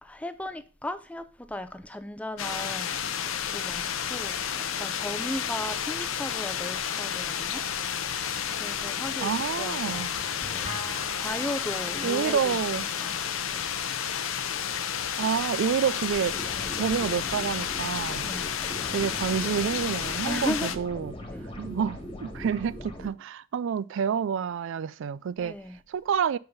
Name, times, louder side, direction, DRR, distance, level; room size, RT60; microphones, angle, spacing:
voice 1, 0.0-3.0 3.5-7.6 8.5-10.1 10.5-10.7 11.1-12.6 13.0-13.2 13.5-13.7 18.2-18.5 20.3-20.7 21.3-21.5 25.4-25.8, left 1 dB, 5° left, 0.5 m, -36 dB
sound 1, 2.4-20.8, left 8 dB, 80° left, 0.7 m, -31 dB
voice 2, 9.2-10.1 12.0-12.9 15.2-16.4 16.8-18.3 18.9-21.1 21.6-25.6 25.9-26.4, right 7 dB, 65° right, 0.3 m, -28 dB
sound 2, 9.8-14.4 14.7-15.7, equal, 35° right, 1.8 m, -44 dB
sound 3, 15.8-23.1, left 1 dB, 25° left, 1.6 m, -40 dB
5.6 x 5.5 x 5.5 m
head